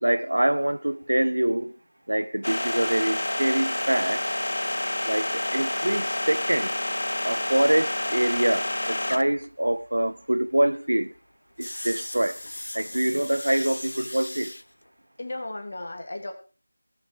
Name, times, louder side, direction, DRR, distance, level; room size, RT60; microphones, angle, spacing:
voice 1, 0.0-1.7 2.1-4.2 5.1-6.7 7.2-11.1 11.6-12.4 12.7-14.5, right 1 dB, 65° right, 1.0 m, -25 dB
sound 1, 2.4-9.5 11.6-14.6, left 1 dB, 60° left, 0.6 m, -30 dB
voice 2, 13.0-13.3 15.2-16.3, left 2 dB, 40° left, 2.8 m, -36 dB
18.5 x 7.8 x 4.9 m
figure-of-eight pair, 170°, 0 cm